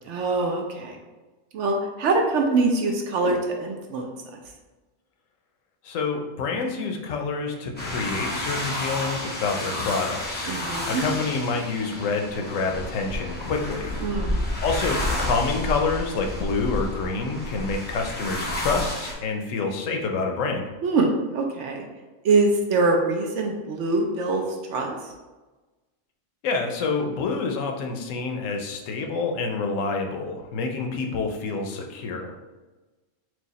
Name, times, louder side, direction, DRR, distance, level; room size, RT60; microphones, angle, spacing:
voice 1, 0.1-1.0 1.5-4.1 10.5-11.0 14.0-14.4 20.8-21.9 22.2-24.4 24.7-25.0, right 3 dB, 70° right, 2 dB, 0.9 m, -24 dB
voice 2, 5.8-14.0 14.6-20.6 26.4-32.3, left 4 dB, 80° left, 3 dB, 1.0 m, -27 dB
sound 1, 7.8-19.1, left 1 dB, 10° left, 0.5 m, -30 dB
4.7 x 2.3 x 4.0 m, 1.2 s
omnidirectional pair, 1.3 m